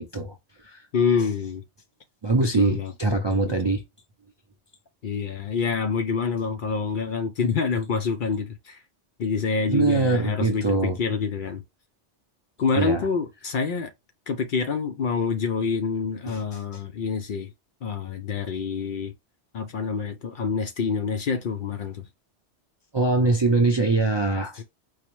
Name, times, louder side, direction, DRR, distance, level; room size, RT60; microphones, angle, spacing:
voice 1, 0.0-0.8 2.2-3.8 9.7-11.0 12.8-13.1 16.3-16.4 16.7-16.8 22.9-24.6, right 3 dB, 40° right, 0.4 m, -23 dB
voice 2, 0.9-1.6 2.4-2.9 3.4-3.7 5.0-8.8 9.2-11.6 12.6-13.9 14.3-17.5 17.8-19.1 19.5-22.1 24.6-24.7, left 5 dB, 60° left, 0.6 m, -27 dB
4.8 x 2.0 x 2.9 m
omnidirectional pair, 1.2 m